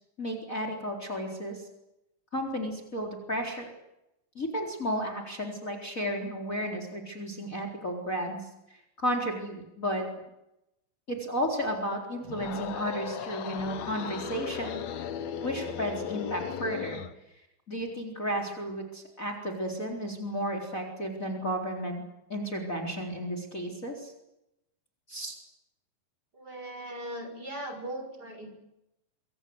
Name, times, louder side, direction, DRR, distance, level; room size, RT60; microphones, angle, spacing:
voice 1, 0.2-1.6 2.3-3.7 4.3-8.4 9.0-10.0 11.1-14.8 15.4-17.0 17.7-22.0 22.3-24.1 25.1-25.4, equal, 25° left, 2 dB, 4.4 m, -33 dB
sound 1, 12.2-17.2, left 8 dB, 60° left, 2.3 m, -36 dB
voice 2, 26.3-28.5, right 1 dB, 30° right, 5 dB, 6.5 m, -39 dB
27.0 x 25.5 x 8.0 m, 0.88 s
omnidirectional pair, 3.8 m